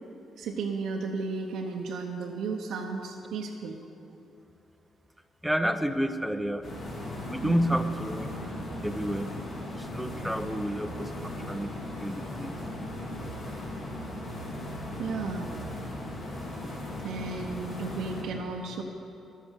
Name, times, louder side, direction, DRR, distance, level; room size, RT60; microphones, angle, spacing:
voice 1, 0.4-3.8 7.4-7.8 15.0-15.5 17.0-18.8, right 4 dB, 80° right, -1 dB, 0.9 m, -34 dB
voice 2, 5.4-6.7 7.2-8.3 8.8-9.4 9.8-12.9, equal, 5° right, 9 dB, 0.7 m, -30 dB
sound 1, 6.6-18.2, left 1 dB, 50° left, 2.5 m, -37 dB
11.5 x 8.3 x 7.4 m, 2.8 s
cardioid pair, 90°, 0 cm